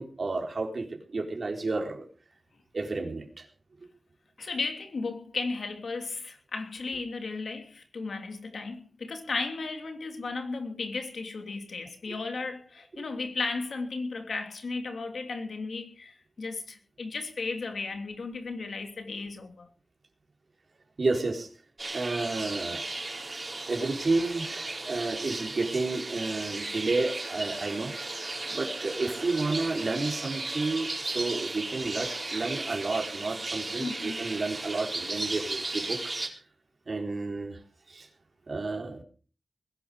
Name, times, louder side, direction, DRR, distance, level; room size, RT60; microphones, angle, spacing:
voice 1, 0.0-2.1 2.7-3.5 21.0-21.5 21.9-22.8 23.7-27.9 28.5-36.0 36.9-37.6 37.9-38.1 38.5-39.0, right 3 dB, 60° right, 3.9 m, -31 dB
voice 2, 4.4-19.7 33.8-34.2, left 3 dB, 85° left, 3.0 m, -35 dB
sound 1, 21.8-36.3, right 2 dB, 35° right, 4.5 m, -35 dB
21.0 x 11.0 x 5.0 m
wide cardioid pair, 80°, 0 cm